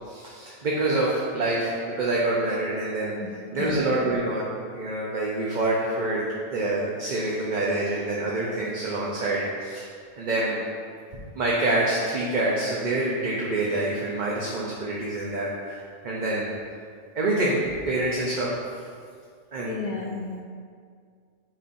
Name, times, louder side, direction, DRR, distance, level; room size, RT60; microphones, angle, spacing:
voice 1, 0.1-6.2 6.5-9.8 10.2-10.6 11.3-16.5 17.2-17.6 17.9-18.5 19.5-19.8, right 2 dB, 45° right, -5 dB, 0.8 m, -26 dB
voice 2, 3.2-3.8 19.7-20.4, left 4 dB, 55° left, -1 dB, 0.5 m, -33 dB
9.1 x 4.2 x 2.6 m, 2.1 s
omnidirectional pair, 1.2 m